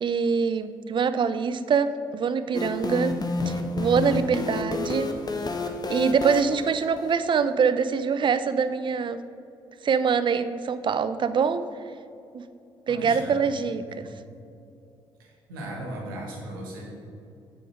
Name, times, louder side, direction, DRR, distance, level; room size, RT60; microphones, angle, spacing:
voice 1, 0.0-3.1 3.5-5.1 5.9-9.2 9.8-11.6 12.3-12.4 12.9-14.1, right 6 dB, 45° right, 12 dB, 0.5 m, -24 dB
sound 1, 2.5-7.2, left 3 dB, 35° left, 0.9 m, -30 dB
voice 2, 12.9-13.3 14.0-14.1 15.2-16.8, right 1 dB, 90° right, -1 dB, 1.2 m, -37 dB
7.6 x 5.2 x 4.9 m, 2.6 s
hypercardioid pair, 45°, 11 cm